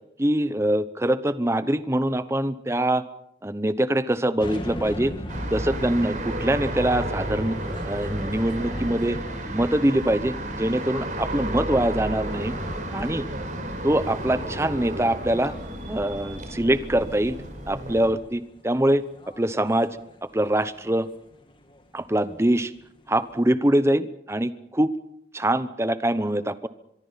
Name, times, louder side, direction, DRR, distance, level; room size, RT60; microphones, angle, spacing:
voice 1, 0.2-3.1 3.4-5.1 5.5-7.6 7.8-9.2 9.5-12.5 12.9-13.3 13.8-15.5 15.9-19.0 19.4-20.0 20.3-21.1 21.9-22.7 23.1-24.9 25.3-26.7, right 1 dB, 15° right, 13 dB, 0.9 m, -24 dB
sound 1, 4.4-23.5, equal, 30° left, 2.4 m, -42 dB
sound 2, 5.3-18.1, right 1 dB, 45° right, 5.4 m, -32 dB
24.0 x 23.0 x 5.8 m, 0.78 s
head